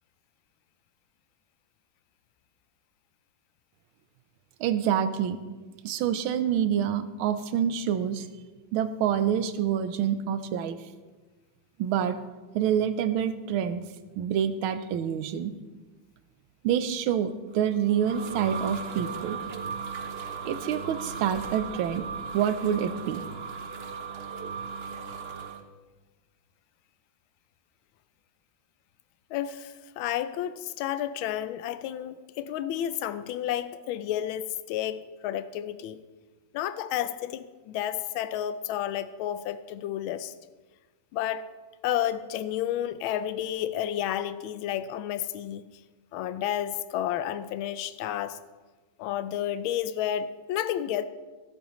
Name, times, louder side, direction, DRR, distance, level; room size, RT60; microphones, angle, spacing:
voice 1, 4.6-5.4 5.8-8.3 8.7-10.8 11.8-12.2 12.5-13.8 14.2-15.5 16.6-19.4 20.5-22.1 22.3-23.2, right 9 dB, 90° right, 11 dB, 1.6 m, -27 dB
sound 1, 17.6-25.6, right 5 dB, 50° right, 0.7 m, -37 dB
voice 2, 29.3-36.0 36.5-40.3 41.1-41.4 41.8-45.6 46.1-48.4 49.0-51.1, left 11 dB, 85° left, 12 dB, 1.4 m, -31 dB
25.5 x 8.8 x 3.1 m, 1.3 s
omnidirectional pair, 2.2 m